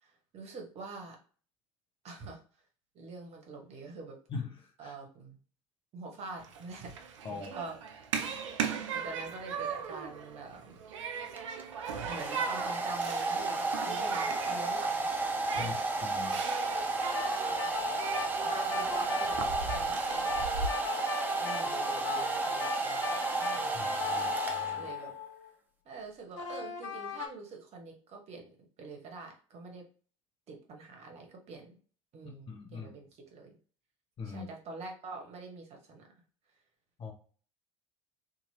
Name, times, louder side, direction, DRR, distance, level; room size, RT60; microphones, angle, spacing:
voice 1, 0.0-1.2 2.0-2.4 2.9-4.2 4.8-5.4 5.9-6.9 7.3-8.0 8.9-10.8 12.0-15.8 17.5-20.5 20.7-20.8 21.4-23.9 24.7-25.1 25.8-29.8 30.5-31.7 32.1-33.6 34.2-36.1, right 3 dB, 40° right, 2 dB, 1.1 m, -46 dB
Human group actions, 6.4-20.7, right 6 dB, 75° right, 0.4 m, -39 dB
Domestic sounds home sounds, 11.4-25.1, right 3 dB, 10° right, 0.6 m, -32 dB
voice 2, 16.0-16.4 23.7-24.3 24.6-24.9 32.5-32.9 34.2-34.5 37.0-37.1, left 5 dB, 35° left, 2 dB, 0.9 m, -41 dB
sound 1, 17.0-25.5 26.3-27.3, left 6 dB, 70° left, 0.8 m, -39 dB
2.8 x 2.6 x 2.8 m, 0.41 s
figure-of-eight pair, 65°, 16 cm